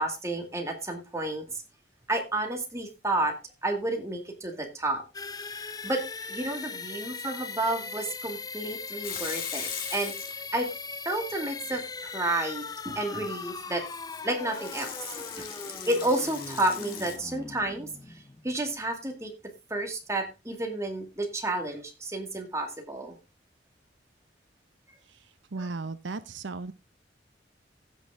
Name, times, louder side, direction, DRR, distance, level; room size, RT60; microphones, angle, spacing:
voice 1, 0.0-1.4 2.1-3.3 3.6-5.0 5.8-6.0 6.3-10.1 10.5-10.7 11.1-13.8 14.2-15.5 15.9-19.3 19.7-23.2 25.6-25.7, right 2 dB, 15° right, 3 dB, 2.1 m, -31 dB
sound 1, 5.1-18.8, left 4 dB, 20° left, 0.5 m, -39 dB
Water tap faucet / Sink (filling or washing) / Liquid, 9.0-10.7 11.1-11.8 13.9-17.2, left 7 dB, 50° left, 2.2 m, -39 dB
voice 2, 25.5-26.7, right 3 dB, 80° right, 14 dB, 0.7 m, -36 dB
15.5 x 6.3 x 3.6 m, 0.26 s
head